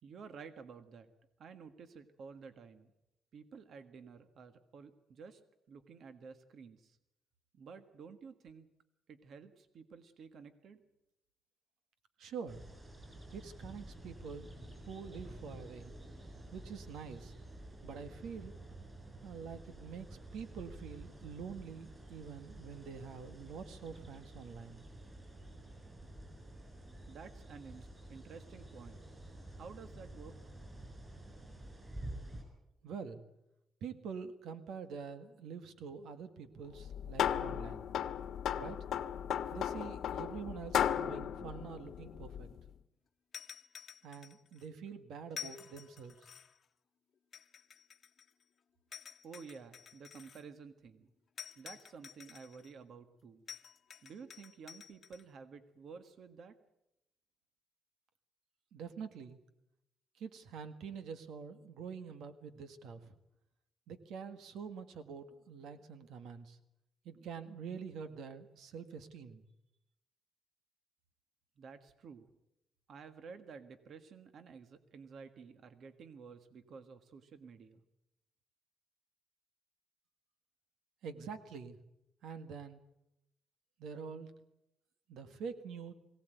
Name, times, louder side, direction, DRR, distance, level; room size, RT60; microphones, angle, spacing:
voice 1, 0.0-1.1 1.4-2.9 3.3-5.4 5.7-7.0 7.5-8.7 9.1-10.8 27.1-29.0 29.5-30.4 49.2-51.1 51.5-53.5 54.0-56.6 71.6-72.3 72.9-77.8, right 5 dB, 55° right, 10 dB, 1.6 m, -52 dB
voice 2, 12.2-12.6 13.3-14.5 14.9-15.9 16.5-17.3 17.8-18.5 19.2-20.1 20.3-24.8 32.8-33.2 33.8-37.9 38.6-38.8 39.5-42.5 44.0-46.2 58.7-59.4 60.2-63.0 63.9-66.6 67.1-69.4 81.0-81.8 82.2-82.8 83.8-84.3 85.1-85.9, right 6 dB, 85° right, 9 dB, 1.8 m, -46 dB
sound 1, 12.5-32.4, right 1 dB, 20° right, 7.6 m, -50 dB
sound 2, 36.7-42.6, left 9 dB, 70° left, 1.2 m, -36 dB
sound 3, 43.3-44.7 45.3-46.6 47.3-48.4 48.9-50.4 51.4-52.7 53.5-55.2, left 8 dB, 45° left, 1.1 m, -50 dB
22.5 x 17.5 x 9.2 m, 0.86 s
cardioid pair, 140°, 0 cm